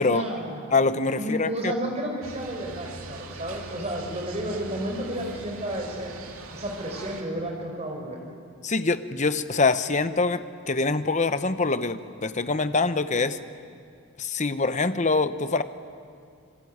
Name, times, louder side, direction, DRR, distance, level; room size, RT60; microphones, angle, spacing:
voice 1, 0.0-0.7 1.2-6.1 6.5-8.2, right 1 dB, 30° right, 1 dB, 5.2 m, -32 dB
voice 2, 0.7-1.7 8.6-13.4 14.2-15.6, left 3 dB, 35° left, 11 dB, 0.9 m, -24 dB
sound 1, 2.2-7.2, right 2 dB, 70° right, 2.6 m, -42 dB
28.0 x 21.5 x 9.6 m, 2.3 s
head